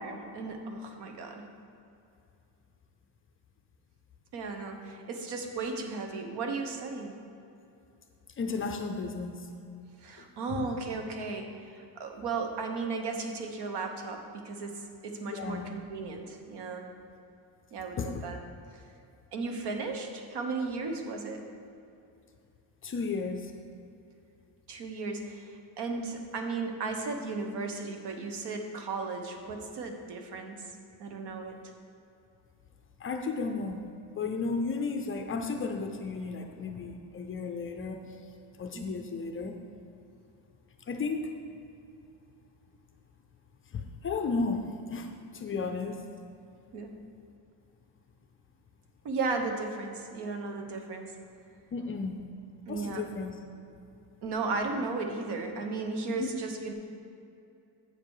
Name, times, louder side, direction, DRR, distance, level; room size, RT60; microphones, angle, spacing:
voice 1, 0.0-1.5 4.3-7.1 10.0-16.9 17.7-18.4 19.3-21.4 24.7-30.6 31.0-31.6 38.7-38.9 46.7-46.9 49.0-51.1 52.7-53.1 54.2-56.7, right 3 dB, 65° right, 4 dB, 1.1 m, -35 dB
voice 2, 8.4-9.5 10.5-10.7 15.3-15.7 18.0-18.2 22.8-23.5 33.0-33.8 34.1-38.0 38.6-39.6 40.9-41.3 43.7-46.0 51.7-52.2 52.7-53.4 56.2-56.3, left 4 dB, 30° left, 5 dB, 0.4 m, -34 dB
7.8 x 6.7 x 4.8 m, 2.7 s
cardioid pair, 165°, 44 cm